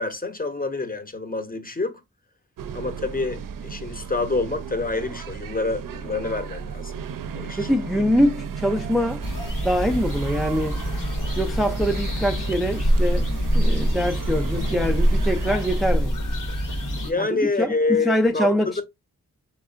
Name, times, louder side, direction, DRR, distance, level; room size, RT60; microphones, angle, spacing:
voice 1, 0.0-2.0 2.7-7.0 7.3-7.7 17.0-18.5 18.8-18.9, left 3 dB, 25° left, 0.8 m, -27 dB
sound 1, 2.6-15.9, right 7 dB, 65° right, 0.5 m, -35 dB
voice 2, 7.6-9.2 9.6-10.8 11.4-13.3 13.5-16.2 17.2-17.3 17.6-17.7 18.0-18.8, equal, ahead, 0.4 m, -23 dB
sound 2, 9.2-17.1, equal, 60° left, 1.6 m, -24 dB
3.5 x 3.1 x 2.4 m
cardioid pair, 50°, 36 cm